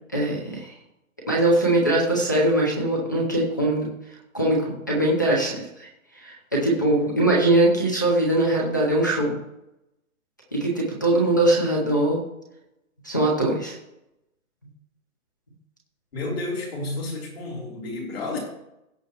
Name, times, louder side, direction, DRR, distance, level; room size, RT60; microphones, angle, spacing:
voice 1, 0.1-0.7 1.3-3.9 4.3-5.9 6.1-9.4 10.5-12.2 13.0-13.8, right 1 dB, 15° left, -2 dB, 0.7 m, -21 dB
voice 2, 16.1-18.4, left 2 dB, 45° left, -2 dB, 3.4 m, -31 dB
16.5 x 6.9 x 3.0 m, 0.87 s
hypercardioid pair, 180°, 43 cm